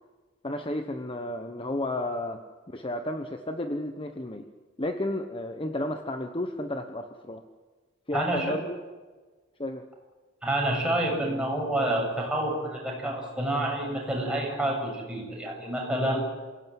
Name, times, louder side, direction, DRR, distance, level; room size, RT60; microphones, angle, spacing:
voice 1, 0.4-4.5 4.8-7.4 8.1-8.8 9.6-9.9, left 1 dB, 25° left, 6 dB, 1.1 m, -32 dB
voice 2, 8.1-8.5 10.4-16.2, right 1 dB, 5° right, -1 dB, 7.7 m, -28 dB
28.0 x 17.5 x 9.3 m, 1.4 s
head